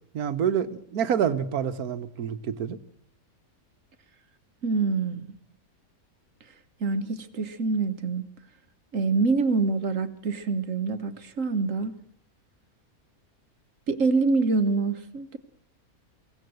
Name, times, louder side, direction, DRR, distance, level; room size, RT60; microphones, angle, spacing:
voice 1, 0.1-2.8, right 8 dB, 75° right, 1.5 m, -27 dB
voice 2, 4.6-5.4 6.8-8.2 8.9-11.9 13.9-15.4, right 4 dB, 60° right, 1.5 m, -25 dB
23.5 x 17.0 x 7.8 m
omnidirectional pair, 1.6 m